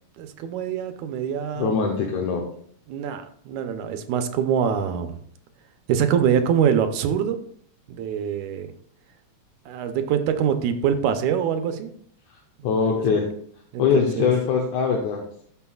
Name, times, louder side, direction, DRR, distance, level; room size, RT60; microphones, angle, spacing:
voice 1, 0.2-1.8 2.9-5.2 5.9-7.4 7.9-8.7 9.7-11.9 12.8-13.0 13.7-14.3, right 8 dB, 80° right, 8 dB, 2.2 m, -24 dB
voice 2, 1.6-2.4 12.6-13.3 13.8-15.4, left 6 dB, 75° left, 0 dB, 2.3 m, -22 dB
12.5 x 6.0 x 2.4 m, 0.62 s
omnidirectional pair, 3.4 m